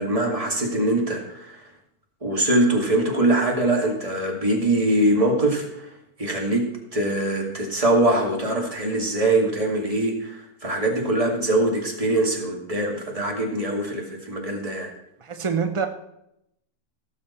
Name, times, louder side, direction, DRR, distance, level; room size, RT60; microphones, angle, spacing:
voice 1, 0.0-1.6 2.2-5.9 6.2-14.9, right 1 dB, 20° right, 0 dB, 2.1 m, -23 dB
voice 2, 15.2-15.9, right 6 dB, 50° right, 6 dB, 0.3 m, -25 dB
17.0 x 6.7 x 4.3 m, 0.81 s
omnidirectional pair, 1.6 m